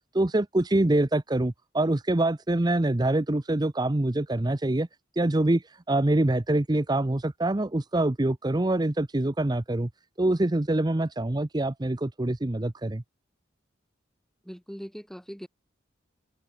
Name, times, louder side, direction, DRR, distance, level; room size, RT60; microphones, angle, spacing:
voice 1, 0.1-4.9 5.1-9.9 10.2-13.0, right 1 dB, 20° right, 0.7 m, -25 dB
voice 2, 14.4-15.5, equal, ahead, 6.8 m, -40 dB
head